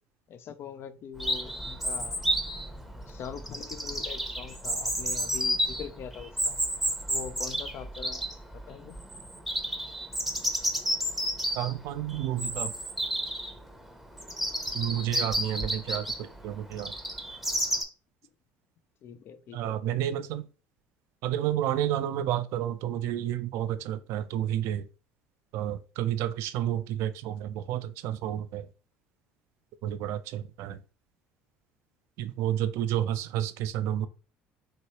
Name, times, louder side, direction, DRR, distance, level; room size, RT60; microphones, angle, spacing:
voice 1, 0.3-2.3 3.1-6.6 7.1-8.2 8.5-9.0 19.0-19.8, left 7 dB, 50° left, 0.5 m, -42 dB
Chirp tweet, 1.2-17.8, equal, ahead, 0.7 m, -31 dB
voice 2, 11.5-12.7 14.7-16.9 19.5-20.5 21.2-24.9 25.5-28.7 29.8-30.8 32.2-34.1, right 11 dB, 65° right, 0.3 m, -30 dB
3.1 x 2.9 x 2.8 m
hypercardioid pair, 70°, 5 cm